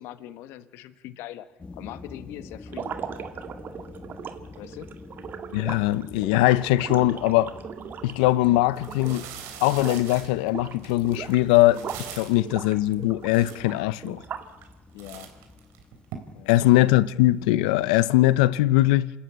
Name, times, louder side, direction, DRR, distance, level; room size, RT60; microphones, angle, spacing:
voice 1, 0.0-1.5 1.7-2.9 4.6-4.9 14.9-15.3 16.3-16.9, left 13 dB, 75° left, 1.2 m, -41 dB
sound 1, 1.6-18.1, left 3 dB, 25° left, 2.3 m, -48 dB
sound 2, 2.7-9.3 9.6-10.1 10.4-12.1 12.4-14.6, right 7 dB, 50° right, 1.9 m, -38 dB
voice 2, 5.5-7.5 8.0-9.2 9.6-14.2 16.5-19.1, left 17 dB, 90° left, 0.7 m, -21 dB
sound 3, 8.1-8.3 8.7-12.5 13.0-13.1 13.3-14.0 14.5-14.7 15.0-16.1, right 10 dB, 75° right, 3.5 m, -42 dB
27.5 x 13.0 x 8.8 m
supercardioid pair, 90°, 4 cm